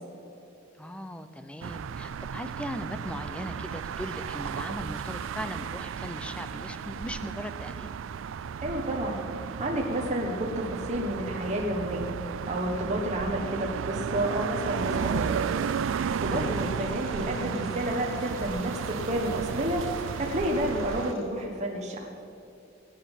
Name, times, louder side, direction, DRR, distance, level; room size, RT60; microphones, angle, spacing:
voice 1, 0.8-7.9 16.3-16.6, equal, 5° left, 10 dB, 0.7 m, -38 dB
sound 1, 1.6-21.1, right 7 dB, 75° right, 0.4 m, -34 dB
voice 2, 8.6-12.1 12.5-15.5 15.9-22.1, right 1 dB, 35° right, -1 dB, 1.4 m, -30 dB
sound 2, 14.6-21.2, left 2 dB, 75° left, 2.4 m, -48 dB
18.0 x 9.3 x 7.4 m, 2.8 s
head